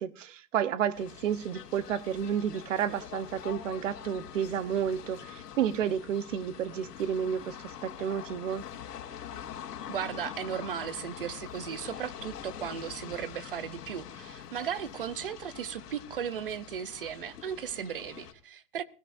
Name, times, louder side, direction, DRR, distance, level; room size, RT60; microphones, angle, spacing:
voice 1, 0.0-7.6 7.8-8.6, right 8 dB, 55° right, 1.1 m, -31 dB
sound 1, 0.9-18.3, left 9 dB, 90° left, 2.7 m, -44 dB
voice 2, 9.9-18.8, right 8 dB, 35° right, 0.6 m, -36 dB
22.5 x 16.5 x 2.6 m
hypercardioid pair, 180°, 46 cm